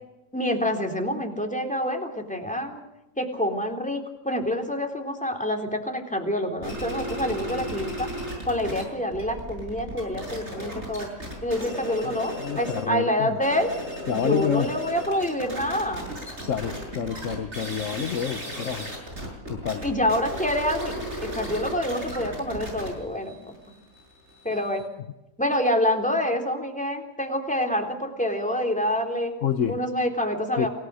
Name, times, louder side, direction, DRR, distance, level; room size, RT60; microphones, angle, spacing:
voice 1, 0.3-2.8 3.2-8.1 8.5-11.1 11.4-13.7 14.1-16.1 19.8-20.9 21.2-23.3 24.4-24.8 25.4-29.3 29.7-30.7, left 1 dB, 5° left, 2 dB, 3.7 m, -27 dB
sound 1, 6.6-8.8 9.1-12.9 13.3-24.9, equal, 50° right, 7.9 m, -35 dB
voice 2, 12.4-13.3 14.1-14.7 16.5-19.0 19.5-19.9 29.4-29.8 30.6-30.7, left 8 dB, 60° left, 9 dB, 1.3 m, -28 dB
28.0 x 18.5 x 6.4 m, 0.94 s
omnidirectional pair, 1.5 m